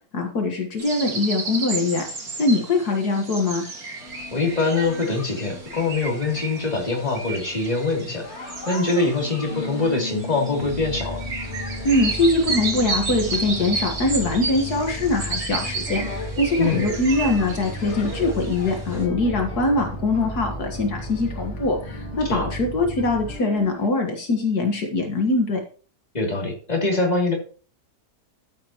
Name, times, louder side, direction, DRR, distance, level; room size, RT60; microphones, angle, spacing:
voice 1, 0.1-2.1 2.4-3.6 11.8-25.6, left 2 dB, 70° left, 2 dB, 2.1 m, -22 dB
sound 1, 0.8-19.1, right 3 dB, 60° right, 2.6 m, -33 dB
sound 2, 4.0-23.9, left 3 dB, 45° left, 1.9 m, -38 dB
voice 2, 4.3-11.3 16.6-16.9 22.2-22.4 26.1-27.3, left 3 dB, 25° left, -1 dB, 3.2 m, -24 dB
sound 3, 10.6-23.3, right 1 dB, 45° right, 5.1 m, -35 dB
13.5 x 8.3 x 3.0 m, 0.40 s
omnidirectional pair, 1.7 m